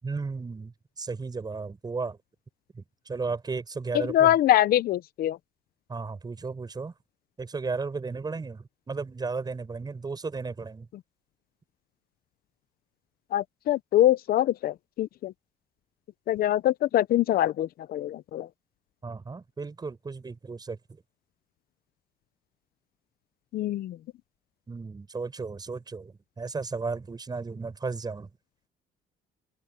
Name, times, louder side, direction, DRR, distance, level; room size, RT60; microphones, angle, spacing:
voice 1, 0.0-2.2 2.7-4.3 5.9-6.9 7.4-10.9 19.0-20.8 24.7-28.3, right 4 dB, 25° right, 6.2 m, -34 dB
voice 2, 3.9-5.4 13.3-15.3 16.3-18.5 23.5-24.0, left 12 dB, 60° left, 0.7 m, -24 dB
cardioid pair, 110°, 17 cm